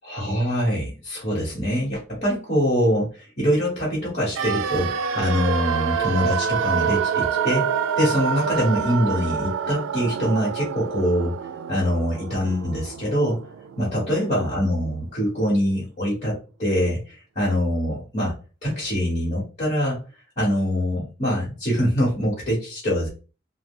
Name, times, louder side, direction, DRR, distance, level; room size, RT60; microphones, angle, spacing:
voice 1, 0.0-4.9 5.1-11.3 11.7-13.4 13.8-18.3 18.6-20.0 20.4-23.1, equal, 35° left, -7 dB, 1.3 m, -24 dB
sound 1, 4.3-14.3 14.5-14.6, right 7 dB, 90° right, 0.3 m, -27 dB
3.3 x 2.2 x 3.6 m, 0.34 s
head